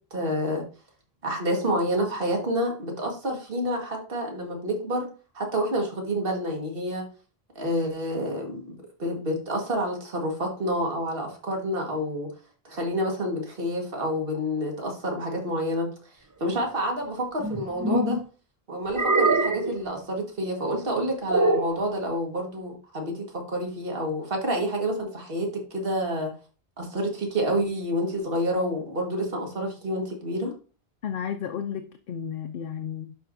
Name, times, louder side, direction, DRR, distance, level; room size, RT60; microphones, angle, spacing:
voice 1, 0.1-0.6 1.2-5.1 5.4-7.0 7.6-8.7 9.0-12.3 12.7-15.9 16.4-18.2 18.7-26.3 26.8-30.5, equal, 65° right, 1.8 m, -28 dB
sound 1, 17.4-18.2 18.9-19.8 21.3-21.8, right 2 dB, 25° right, 0.5 m, -23 dB
voice 2, 31.0-33.1, left 8 dB, 65° left, 0.7 m, -33 dB
11.0 x 4.6 x 2.6 m
omnidirectional pair, 1.0 m